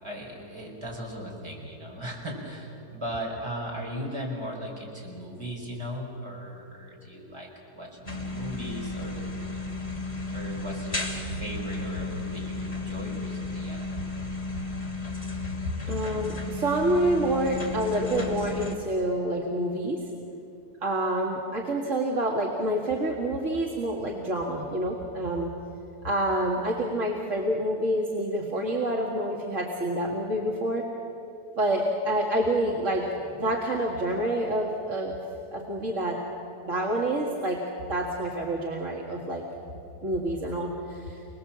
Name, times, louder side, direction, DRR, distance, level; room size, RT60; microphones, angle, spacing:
voice 1, 0.0-9.3 10.3-14.1, equal, 15° right, -2 dB, 5.1 m, -37 dB
sound 1, 8.0-18.7, left 2 dB, 20° left, 2.4 m, -34 dB
voice 2, 15.9-20.0 20.8-25.5 26.0-30.8 31.6-33.1 33.3-35.2 35.5-36.2 36.7-37.6 37.9-39.4 40.0-41.2, right 1 dB, 50° right, -1 dB, 2.2 m, -27 dB
29.5 x 20.0 x 7.4 m, 2.8 s
omnidirectional pair, 1.7 m